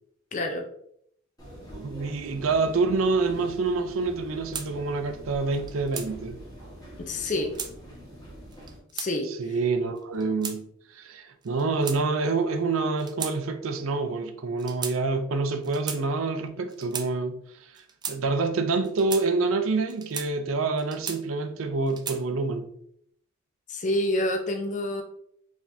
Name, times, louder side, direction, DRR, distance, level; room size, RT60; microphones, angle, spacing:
voice 1, 0.3-0.6 7.0-7.5 8.9-9.3 23.7-25.0, left 1 dB, 35° left, 0.5 m, -27 dB
sound 1, 1.4-8.8, equal, 20° left, 1.4 m, -45 dB
voice 2, 1.7-6.4 9.3-17.7 18.1-22.7, right 3 dB, 80° right, 0.5 m, -27 dB
sound 2, 4.5-4.7 5.5-6.1 7.1-7.7 8.5-9.1 10.0-10.6 11.4-12.3 13.0-13.4 13.6-13.8 14.6-15.0 15.6-16.0 16.7-17.1 17.7-18.2 18.8-19.3 19.9-20.3 20.8-21.4 21.9-22.2, right 7 dB, 20° right, 0.3 m, -36 dB
4.8 x 3.4 x 2.7 m
head